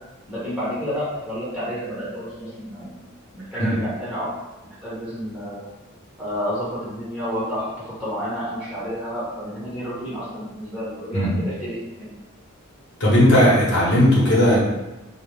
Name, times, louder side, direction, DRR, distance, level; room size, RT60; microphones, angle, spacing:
voice 1, 0.3-2.9 3.3-4.3 4.8-5.6 6.2-12.1, equal, 5° right, -11 dB, 0.9 m, -30 dB
voice 2, 13.0-14.6, equal, 55° left, -7 dB, 0.9 m, -16 dB
2.4 x 2.0 x 3.1 m, 1.1 s
head